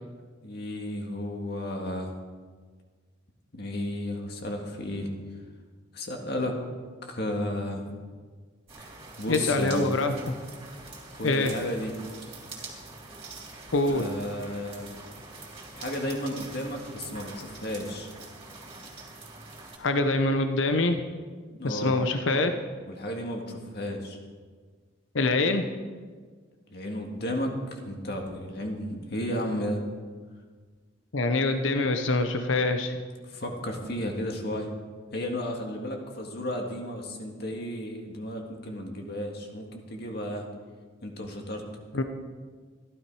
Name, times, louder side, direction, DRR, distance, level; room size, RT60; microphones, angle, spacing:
voice 1, 0.4-2.1 3.5-5.1 5.9-6.6 7.0-7.9 8.8-8.9 9.2-9.9 11.1-11.9 13.9-14.9 15.7-18.1 21.5-22.0 22.9-24.2 26.7-29.8 33.2-34.7 35.1-40.5 41.0-41.6, left 1 dB, 55° left, 2 dB, 1.9 m, -33 dB
sound 1, 8.7-19.8, right 3 dB, 30° right, 3.3 m, -44 dB
voice 2, 9.3-10.2 11.2-11.5 13.7-14.0 19.8-21.0 21.6-22.5 25.1-25.6 31.1-33.0 41.9-42.0, left 2 dB, 70° left, 7 dB, 0.9 m, -24 dB
15.0 x 12.5 x 4.8 m, 1.5 s
head